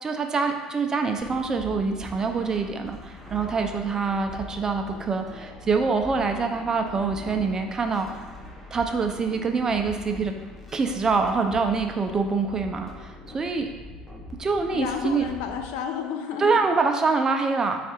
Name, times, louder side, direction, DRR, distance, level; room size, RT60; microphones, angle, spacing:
voice 1, 0.0-8.4 8.7-10.3 10.7-13.7 14.4-15.2 16.4-17.8, right 4 dB, 25° right, 5 dB, 0.5 m, -25 dB
sound 1, 1.2-15.6, left 1 dB, 5° left, 0.8 m, -42 dB
voice 2, 14.7-16.6, left 7 dB, 80° left, 5 dB, 0.5 m, -31 dB
4.5 x 2.4 x 4.2 m, 1.3 s
supercardioid pair, 95°, 2 cm